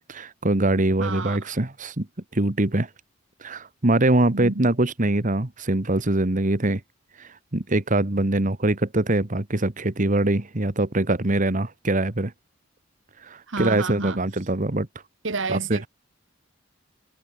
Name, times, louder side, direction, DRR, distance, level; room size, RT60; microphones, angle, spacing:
voice 1, 0.0-2.1 2.3-2.9 3.4-6.8 7.2-12.3 13.2-14.9 15.5-15.9, right 2 dB, 40° right, 1.5 m, -23 dB
voice 2, 1.0-1.4 4.3-4.7 13.5-14.2 15.2-15.9, right 3 dB, 75° right, 1.7 m, -29 dB
head